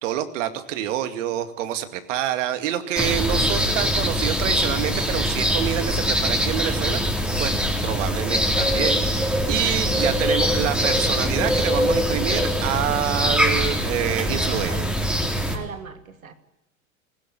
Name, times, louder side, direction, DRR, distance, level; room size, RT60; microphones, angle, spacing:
voice 1, 0.0-7.5 7.8-14.7, right 11 dB, 65° right, 10 dB, 2.3 m, -27 dB
sound 1, 2.9-15.6, equal, 5° right, 3.4 m, -23 dB
voice 2, 14.4-14.9 15.5-16.3, right 7 dB, 90° right, 9 dB, 2.4 m, -37 dB
19.0 x 16.5 x 9.6 m, 0.92 s
hypercardioid pair, 95°, 41 cm